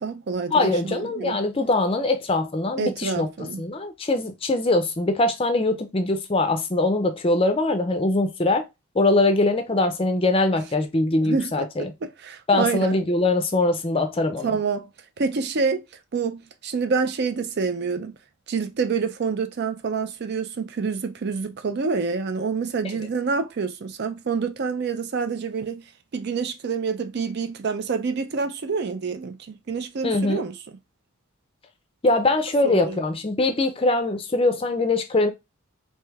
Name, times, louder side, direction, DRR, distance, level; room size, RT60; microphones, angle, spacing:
voice 1, 0.0-1.4 2.8-3.6 11.2-12.9 14.4-14.9 15.2-15.8 16.1-18.2 18.5-25.8 26.1-30.6 32.6-33.0, right 5 dB, 50° right, 0.4 m, -27 dB
voice 2, 0.5-3.3 3.6-8.7 9.0-11.9 12.5-14.6 30.0-30.4 32.0-35.3, left 2 dB, 25° left, 0.5 m, -22 dB
3.2 x 2.7 x 3.4 m
head